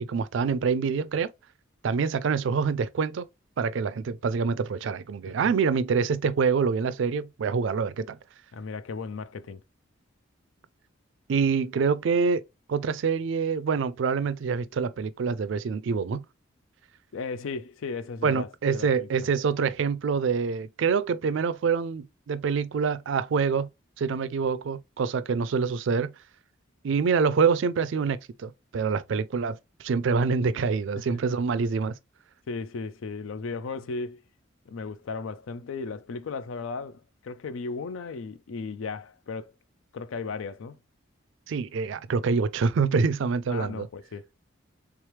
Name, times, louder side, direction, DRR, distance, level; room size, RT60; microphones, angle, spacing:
voice 1, 0.1-1.3 1.8-3.3 3.6-8.2 11.3-12.4 12.7-16.2 18.2-23.7 24.0-26.1 26.8-31.9 41.5-43.9, right 5 dB, 65° right, 0.3 m, -26 dB
voice 2, 8.5-9.6 17.1-19.1 31.0-31.2 32.5-34.2 34.7-39.5 39.9-40.8 43.5-44.3, left 4 dB, 80° left, 0.4 m, -36 dB
3.5 x 3.2 x 3.1 m
head